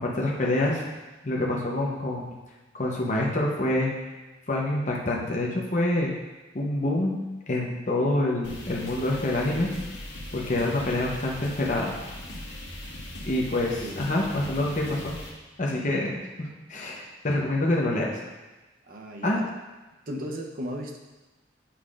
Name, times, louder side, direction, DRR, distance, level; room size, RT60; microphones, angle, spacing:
voice 1, 0.0-0.8 1.2-2.3 2.7-3.9 4.5-6.1 6.5-7.2 7.5-9.7 10.3-11.9 13.3-15.2 15.6-18.2 19.2-19.4, left 1 dB, 40° left, -2 dB, 0.8 m, -26 dB
sound 1, 8.4-15.3, left 1 dB, 80° left, 1.4 m, -39 dB
voice 2, 18.9-19.4 20.1-21.0, equal, 50° right, 1 dB, 0.7 m, -35 dB
8.5 x 5.7 x 2.5 m, 1.1 s
head